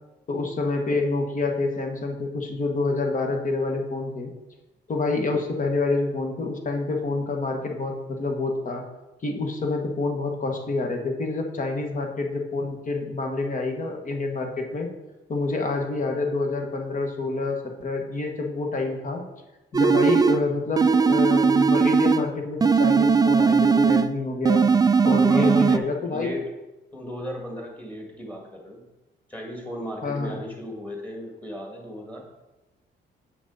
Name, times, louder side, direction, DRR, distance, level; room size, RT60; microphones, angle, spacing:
voice 1, 0.3-4.3 4.9-8.8 9.2-14.9 15.3-19.2 19.7-24.7 25.0-26.3 30.0-30.4, left 3 dB, 40° left, 3 dB, 1.3 m, -27 dB
sound 1, 19.7-20.4 20.8-22.3 22.6-24.1 24.5-25.8, right 5 dB, 20° right, 0.3 m, -19 dB
voice 2, 25.0-26.5 26.9-28.8 29.3-32.2, equal, 5° left, 1 dB, 2.0 m, -35 dB
7.9 x 6.0 x 4.0 m, 1.0 s
cardioid pair, 90°, 20 cm